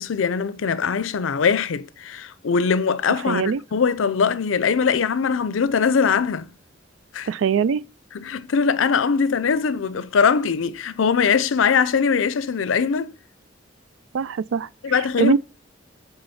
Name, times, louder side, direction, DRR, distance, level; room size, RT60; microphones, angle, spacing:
voice 1, 0.0-6.5 7.1-7.3 8.1-13.1 14.8-15.4, left 6 dB, 85° left, 0.5 m, -21 dB
voice 2, 3.3-3.6 7.3-7.8 14.1-15.4, right 6 dB, 85° right, 0.3 m, -22 dB
6.9 x 3.9 x 5.6 m
head